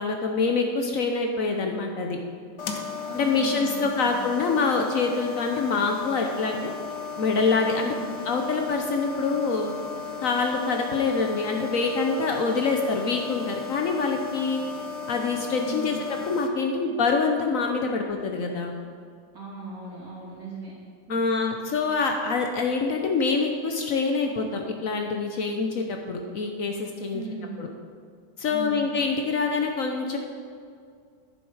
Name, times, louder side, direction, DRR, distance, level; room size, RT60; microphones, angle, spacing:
voice 1, 0.0-2.2 3.1-6.7 7.2-7.9 8.3-9.7 10.2-14.6 15.1-18.7 21.1-27.2 27.6-27.7 28.4-30.2, left 4 dB, 60° left, 3 dB, 1.0 m, -25 dB
sound 1, 2.6-16.5, left 6 dB, 85° left, 1.4 m, -35 dB
voice 2, 3.0-4.2 7.8-8.1 15.6-16.0 19.3-20.7 21.1-21.5 27.1-27.6 28.5-28.9, right 3 dB, 60° right, -7 dB, 3.3 m, -37 dB
10.5 x 7.1 x 4.8 m, 2.2 s
omnidirectional pair, 1.8 m